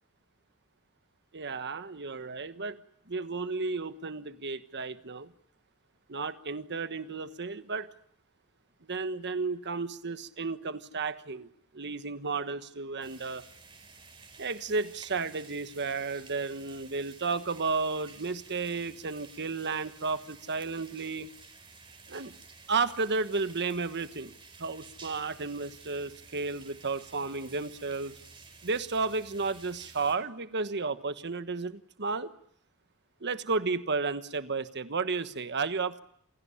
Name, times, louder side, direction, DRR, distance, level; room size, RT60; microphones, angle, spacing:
voice 1, 1.3-2.8 3.1-5.3 6.1-7.9 8.9-11.5 11.7-13.4 14.4-21.3 22.1-22.3 22.7-24.3 24.6-28.1 28.6-32.3 33.2-36.0, right 4 dB, 55° right, 11 dB, 1.3 m, -33 dB
sound 1, 13.0-30.2, right 4 dB, 25° right, 4.6 m, -53 dB
28.0 x 17.0 x 10.0 m, 0.69 s
head